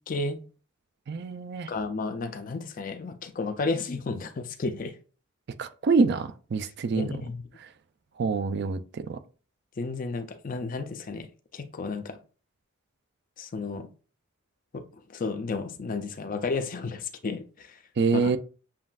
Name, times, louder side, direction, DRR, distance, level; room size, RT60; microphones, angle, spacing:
voice 1, 0.1-0.4 1.7-5.0 7.0-7.4 9.8-11.3 11.5-12.2 13.4-13.9 14.7-14.8 15.1-17.8 18.1-18.3, left 3 dB, 40° left, 0.5 m, -32 dB
voice 2, 1.1-1.7 5.6-7.1 8.2-9.2 18.0-18.4, right 4 dB, 55° right, 0.4 m, -26 dB
7.3 x 2.5 x 2.3 m
head